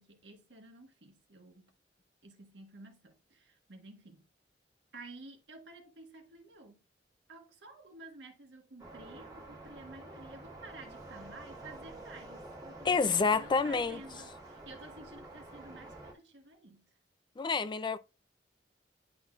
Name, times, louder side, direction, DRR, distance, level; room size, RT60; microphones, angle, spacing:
voice 1, 0.0-1.7 2.2-4.3 4.9-6.8 7.3-16.9, right 2 dB, 75° right, 1.3 m, -52 dB
sound 1, 8.8-16.1, right 2 dB, 20° right, 1.7 m, -49 dB
voice 2, 12.8-14.0 17.4-18.0, left 4 dB, 25° left, 0.4 m, -28 dB
10.0 x 4.0 x 2.4 m
head